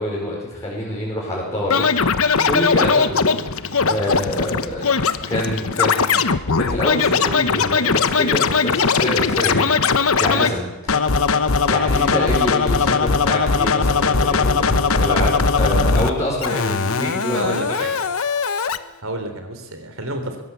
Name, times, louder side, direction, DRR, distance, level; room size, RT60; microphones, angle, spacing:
voice 1, 0.0-1.9 2.4-3.4 3.8-5.0 5.3-6.2 6.5-11.0 11.7-17.8, left 1 dB, 15° left, -6 dB, 5.3 m, -26 dB
Scratching (performance technique), 1.7-10.5 10.9-16.1 16.4-18.8, left 5 dB, 70° left, 1.1 m, -19 dB
voice 2, 17.3-17.9 19.0-20.4, right 1 dB, 65° right, 7 dB, 3.9 m, -29 dB
21.5 x 17.0 x 8.4 m, 1.1 s
head